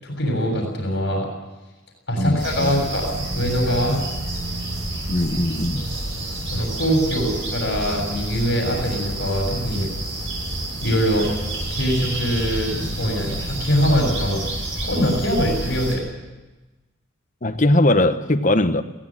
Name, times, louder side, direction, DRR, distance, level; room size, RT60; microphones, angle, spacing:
voice 1, 0.0-1.3 2.1-4.0 6.5-9.9 10.8-11.3 11.7-14.4 14.8-16.0, equal, 55° left, 1 dB, 7.0 m, -23 dB
voice 2, 2.2-2.7 5.1-5.9 17.4-18.8, left 1 dB, 40° left, 9 dB, 1.2 m, -20 dB
sound 1, 2.4-16.0, right 1 dB, 75° right, 8.0 m, -29 dB
22.0 x 17.5 x 7.6 m, 1.1 s
head